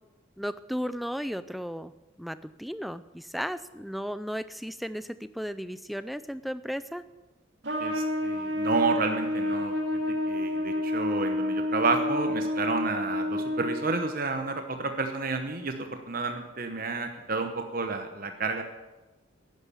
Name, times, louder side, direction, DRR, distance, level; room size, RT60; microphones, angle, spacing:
voice 1, 0.4-7.0, equal, ahead, 14 dB, 0.4 m, -35 dB
Trumpet, 7.6-14.2, left 1 dB, 60° right, 2.7 m, -29 dB
voice 2, 7.8-9.7 10.1-18.6, right 3 dB, 45° right, 5 dB, 1.0 m, -30 dB
11.0 x 10.5 x 8.5 m, 1.1 s
head